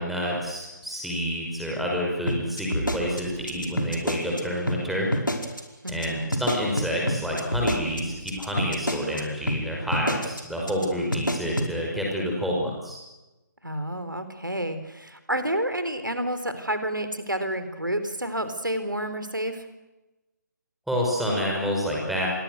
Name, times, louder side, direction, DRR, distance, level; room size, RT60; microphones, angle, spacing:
voice 1, 0.0-5.1 5.9-13.0 20.9-22.3, equal, ahead, -2 dB, 5.6 m, -28 dB
sound 1, 2.3-4.4 4.7-4.8 5.1-5.6 5.9-6.1 6.3-9.2 9.5-9.6 9.9-10.4 10.7-10.8 11.1-11.7, equal, 85° left, 5.1 m, -27 dB
voice 2, 5.8-6.3 13.6-19.7, right 1 dB, 85° right, 10 dB, 4.0 m, -29 dB
29.5 x 23.5 x 6.6 m, 1.1 s
figure-of-eight pair, 145°, 10 cm